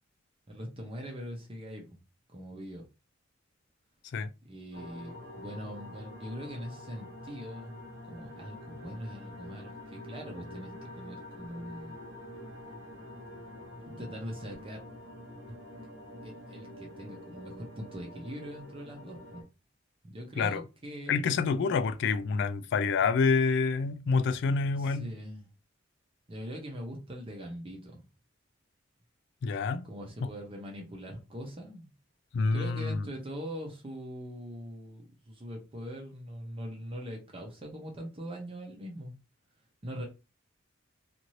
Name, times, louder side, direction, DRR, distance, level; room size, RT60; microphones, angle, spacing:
voice 1, 0.5-1.9 2.3-2.9 4.4-7.8 8.0-12.0 13.9-14.8 16.2-19.4 20.0-21.2 24.8-25.5 26.3-28.0 29.8-31.9 32.5-39.1 39.8-40.0, equal, 30° right, 0.7 m, -42 dB
sound 1, 4.7-19.4, left 1 dB, 65° right, 1.1 m, -46 dB
voice 2, 21.1-25.1 29.4-29.8 32.3-33.0, left 4 dB, 65° left, 0.3 m, -27 dB
2.7 x 2.6 x 3.0 m
head